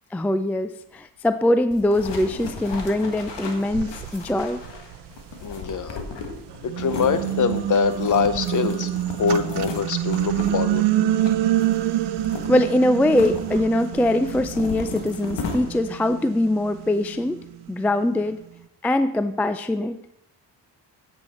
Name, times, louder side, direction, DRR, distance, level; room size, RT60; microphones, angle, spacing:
voice 1, 0.1-4.6 12.5-17.4 17.7-18.4 18.8-20.0, left 1 dB, 5° left, 11 dB, 0.3 m, -22 dB
sound 1, 1.7-16.0, left 4 dB, 75° left, 1.6 m, -36 dB
sound 2, 3.0-3.1 3.6-6.0 6.5-17.8, right 13 dB, 75° right, 0.6 m, -27 dB
voice 2, 5.4-6.0 6.6-8.9 9.2-11.1, left 6 dB, 45° left, 12 dB, 0.8 m, -24 dB
8.9 x 7.5 x 4.2 m, 0.78 s
cardioid pair, 95°, 42 cm